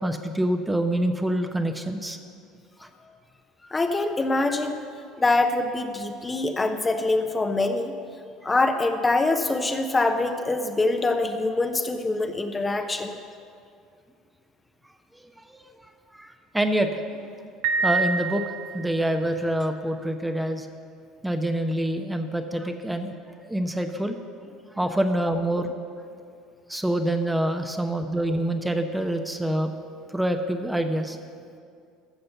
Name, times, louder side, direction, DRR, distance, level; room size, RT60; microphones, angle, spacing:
voice 1, 0.0-2.2 2.8-2.9 15.4-15.6 16.1-17.3 17.8-18.4 18.7-20.7 21.2-23.2 23.4-24.2 24.7-25.7 26.7-29.7 30.1-31.2, right 1 dB, 5° right, 6 dB, 0.8 m, -26 dB
voice 2, 3.7-4.8 5.2-7.9 8.4-13.2, left 2 dB, 20° left, 6 dB, 0.8 m, -24 dB
Piano, 17.6-19.1, right 4 dB, 65° right, 1.1 m, -26 dB
13.5 x 6.6 x 6.9 m, 2.3 s
figure-of-eight pair, 65°, 0 cm